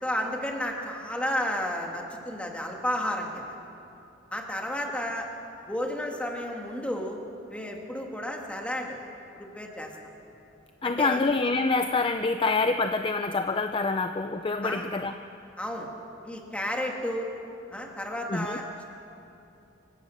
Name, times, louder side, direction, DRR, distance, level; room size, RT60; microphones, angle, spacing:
voice 1, 0.0-3.5 4.3-5.3 5.7-7.2 7.5-9.0 9.4-9.9 10.8-11.2 14.6-14.9 15.6-15.9 16.2-17.3 17.7-18.8, left 1 dB, 5° left, 1 dB, 2.3 m, -32 dB
voice 2, 10.8-15.1 18.3-18.6, left 3 dB, 30° left, 8 dB, 0.5 m, -26 dB
26.0 x 16.0 x 6.6 m, 2.8 s
head